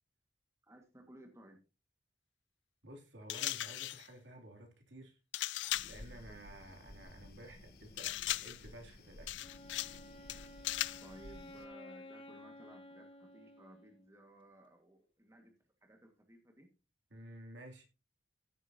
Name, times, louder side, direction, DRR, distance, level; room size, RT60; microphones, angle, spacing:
voice 1, 0.6-1.6 11.0-15.6 15.8-16.7, right 1 dB, 15° right, 1.7 m, -58 dB
voice 2, 2.8-5.2 5.8-9.4 17.1-17.9, right 1 dB, 75° right, 2.9 m, -53 dB
sound 1, 3.3-4.1 5.3-6.0 8.0-8.7 9.3-10.0 10.3-11.1, left 15 dB, 80° left, 0.4 m, -38 dB
sound 2, 5.7-11.7, left 1 dB, 55° left, 1.3 m, -55 dB
Wind instrument woodwind instrument, 9.4-14.2, left 1 dB, 30° left, 0.9 m, -53 dB
15.0 x 8.1 x 2.8 m
head